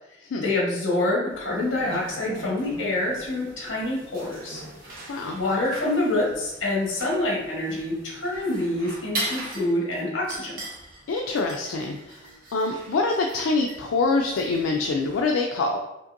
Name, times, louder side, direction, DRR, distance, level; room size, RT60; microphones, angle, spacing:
voice 1, 0.4-4.6 5.2-10.6, left 2 dB, 65° left, -4 dB, 1.4 m, -26 dB
sound 1, 1.3-15.2, right 1 dB, 45° right, 0.9 m, -40 dB
voice 2, 11.1-12.2 12.5-15.8, left 3 dB, 85° left, 1 dB, 0.4 m, -25 dB
5.3 x 2.5 x 2.5 m, 0.91 s
head